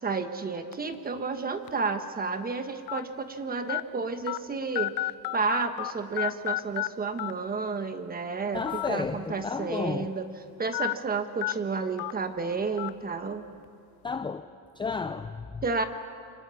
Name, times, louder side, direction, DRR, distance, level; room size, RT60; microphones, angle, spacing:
voice 1, 0.0-4.9 5.3-10.3 10.6-13.4 15.6-15.8, right 4 dB, 25° right, 1.4 m, -31 dB
sound 1, 0.7-0.9 1.7-1.8 2.9-3.0 3.7-3.8 4.3-4.4 4.7-5.9 6.2-6.9 7.2-7.3 8.6-8.9 9.3-9.4 10.7-10.9 11.4-11.5 12.0-12.1 12.8-12.9, left 18 dB, 75° left, 0.7 m, -30 dB
voice 2, 8.5-10.1 14.0-14.5 14.8-15.6, left 5 dB, 15° left, 0.6 m, -32 dB
29.0 x 25.0 x 7.2 m
cardioid pair, 140°, 38 cm